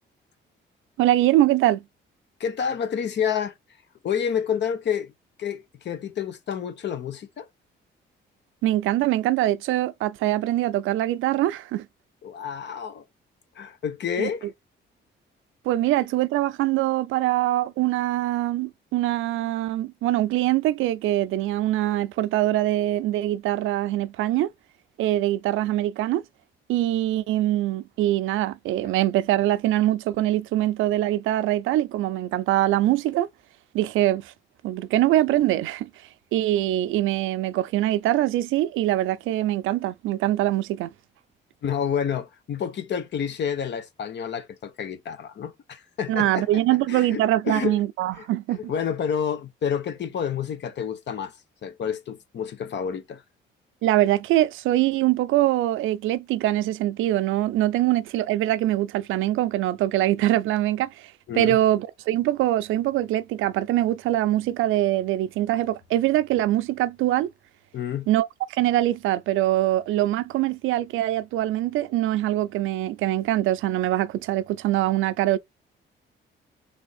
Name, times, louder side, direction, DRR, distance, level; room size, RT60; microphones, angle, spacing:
voice 1, 1.0-1.8 8.6-11.9 14.2-14.3 15.6-24.5 25.0-26.2 26.7-33.3 33.7-34.3 34.6-35.9 36.3-40.9 46.1-48.7 53.8-67.3 68.1-75.4, right 14 dB, 85° right, 0.5 m, -23 dB
voice 2, 2.4-3.5 4.0-5.1 5.4-7.5 12.2-13.0 13.5-14.5 41.6-46.6 46.9-47.8 48.2-48.3 48.6-51.3 51.6-53.2 61.3-61.6 67.7-68.1, left 8 dB, 60° left, 1.1 m, -29 dB
3.5 x 3.4 x 4.1 m
cardioid pair, 90°, 20 cm